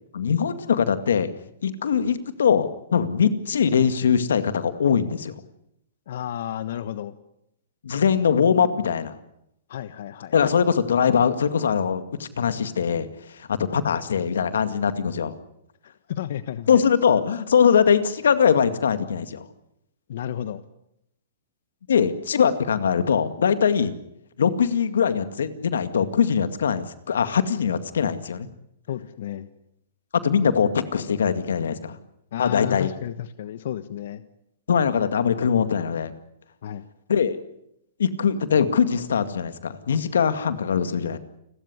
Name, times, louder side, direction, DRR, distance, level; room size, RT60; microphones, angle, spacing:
voice 1, 0.1-1.3 1.6-5.4 7.8-9.2 10.3-15.4 16.7-19.5 21.9-24.0 24.4-28.5 30.2-32.0 32.4-32.9 34.7-36.1 37.1-37.4 38.0-41.2, left 7 dB, 85° left, 11 dB, 2.1 m, -22 dB
voice 2, 6.1-7.1 9.7-10.3 16.1-16.8 20.1-20.6 28.9-29.5 32.3-34.2 36.6-36.9, left 10 dB, 65° left, 13 dB, 1.2 m, -32 dB
29.5 x 13.5 x 9.8 m, 0.80 s
hypercardioid pair, 130°, 0 cm